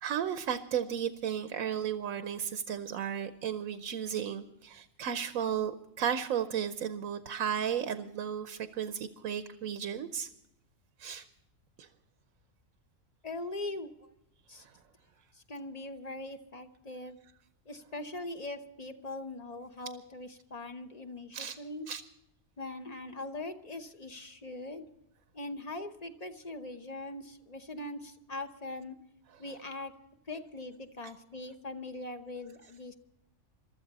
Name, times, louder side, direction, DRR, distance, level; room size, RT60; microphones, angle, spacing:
voice 1, 0.0-10.3 11.0-11.3 11.8-11.9 14.6-14.7 21.3-21.6 21.9-22.0, right 8 dB, 75° right, 10 dB, 1.1 m, -34 dB
voice 2, 13.2-14.1 14.5-14.7 15.3-17.2 17.7-21.9 22.6-24.9 25.3-29.0 29.4-29.9 30.3-32.9, left 2 dB, 35° left, 8 dB, 0.9 m, -41 dB
23.0 x 13.0 x 4.1 m, 0.82 s
omnidirectional pair, 1.4 m